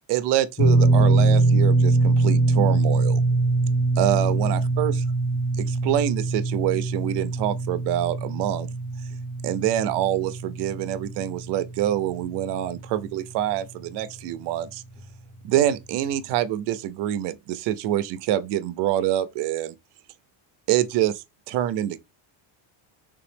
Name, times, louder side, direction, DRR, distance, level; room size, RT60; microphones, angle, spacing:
voice 1, 0.1-3.2 4.0-5.0 5.6-8.7 9.4-14.8 15.4-19.8 20.7-22.0, right 12 dB, 55° right, 0.5 m, -26 dB
sound 1, 0.6-12.8 13.1-13.3 15.0-15.1, right 2 dB, 15° left, 0.7 m, -23 dB
3.5 x 2.9 x 3.2 m
cardioid pair, 165°, 49 cm